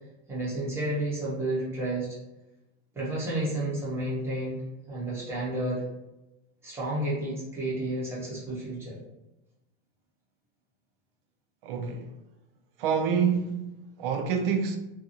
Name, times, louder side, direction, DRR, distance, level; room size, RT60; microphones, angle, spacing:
voice 1, 0.3-2.1 2.9-4.6 4.9-5.8 6.6-9.0, right 1 dB, 10° right, 0.6 m, -31 dB
voice 2, 11.6-12.1 12.8-14.8, right 6 dB, 60° right, 0.5 m, -27 dB
2.6 x 2.3 x 2.7 m
supercardioid pair, 165°, 32 cm